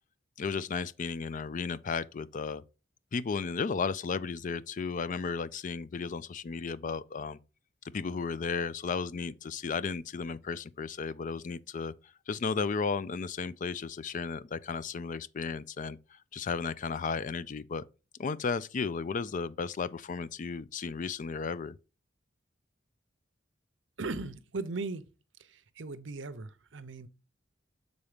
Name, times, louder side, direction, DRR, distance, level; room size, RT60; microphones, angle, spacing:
voice 1, 0.4-2.6 3.1-7.4 7.9-11.9 12.3-17.8 18.2-21.7, left 5 dB, 45° left, 0.4 m, -34 dB
voice 2, 24.0-25.1 25.4-27.1, right 3 dB, 70° right, 0.7 m, -38 dB
7.0 x 4.0 x 5.0 m
head